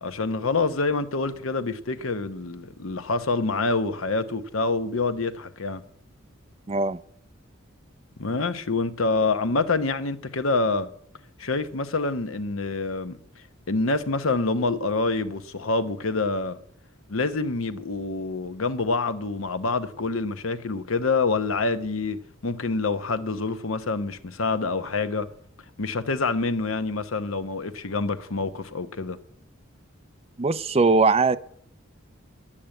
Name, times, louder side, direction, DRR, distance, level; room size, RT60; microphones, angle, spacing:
voice 1, 0.0-5.8 8.2-10.9 11.4-13.2 13.7-16.6 17.1-25.3 25.8-29.2, left 3 dB, 75° left, 0.9 m, -26 dB
voice 2, 6.7-7.0 30.4-31.4, right 4 dB, 30° right, 0.6 m, -20 dB
10.0 x 8.7 x 7.7 m
head